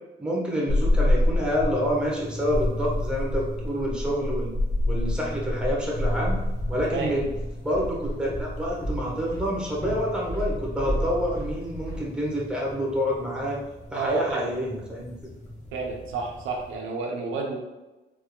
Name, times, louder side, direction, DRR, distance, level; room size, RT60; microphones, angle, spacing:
voice 1, 0.2-4.5 4.8-6.4 6.7-7.3 7.6-13.6 13.9-15.1, equal, 5° right, -5 dB, 1.1 m, -28 dB
Winter quiet small town dog and crow far away, 0.7-16.8, left 1 dB, 35° left, 0.9 m, -30 dB
Walk footsteps, 5.9-12.0, equal, 15° left, 1.3 m, -34 dB
voice 2, 13.9-14.5 15.7-17.6, right 4 dB, 90° right, 0 dB, 0.7 m, -30 dB
3.4 x 3.4 x 2.2 m, 1.1 s
cardioid pair, 90°, 20 cm